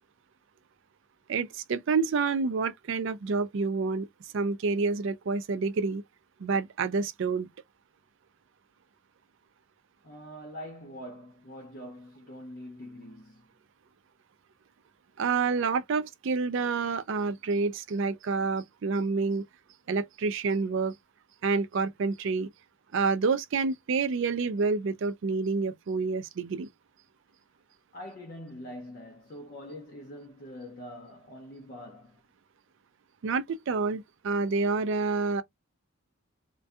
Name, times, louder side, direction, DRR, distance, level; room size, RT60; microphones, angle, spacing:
voice 1, 1.3-4.1 4.3-6.0 6.4-7.5 15.2-19.4 19.9-20.9 21.4-22.5 22.9-26.7 33.2-35.4, right 4 dB, 55° right, 0.4 m, -28 dB
voice 2, 10.0-13.5 27.9-32.2, equal, 40° left, 0.5 m, -44 dB
2.6 x 2.2 x 2.3 m
head